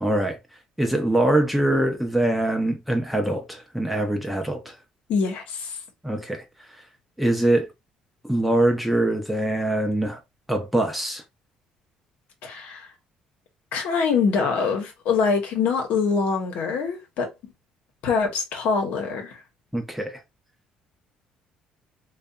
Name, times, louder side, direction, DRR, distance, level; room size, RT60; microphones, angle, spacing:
voice 1, 0.0-0.4 0.8-4.7 6.0-6.4 7.2-7.7 8.2-10.2 10.5-11.2 19.7-20.2, right 1 dB, ahead, 0.6 m, -23 dB
voice 2, 5.1-5.8 12.4-12.9 13.7-17.3 18.0-19.4, left 5 dB, 75° left, 0.9 m, -24 dB
2.6 x 2.3 x 2.2 m
cardioid pair, 95°, 3 cm